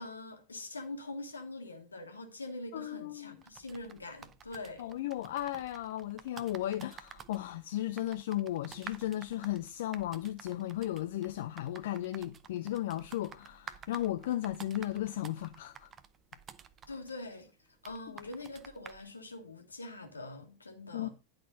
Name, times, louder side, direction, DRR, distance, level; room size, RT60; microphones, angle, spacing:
voice 1, 0.0-4.9 16.9-17.5 17.8-21.1, left 2 dB, 75° left, 1.4 m, -44 dB
voice 2, 2.7-3.4 4.8-15.9 18.1-18.2 20.9-21.1, left 13 dB, 55° left, 0.5 m, -35 dB
sound 1, 3.4-19.1, right 7 dB, 25° right, 0.6 m, -52 dB
10.0 x 4.3 x 5.4 m
figure-of-eight pair, 90°, 0 cm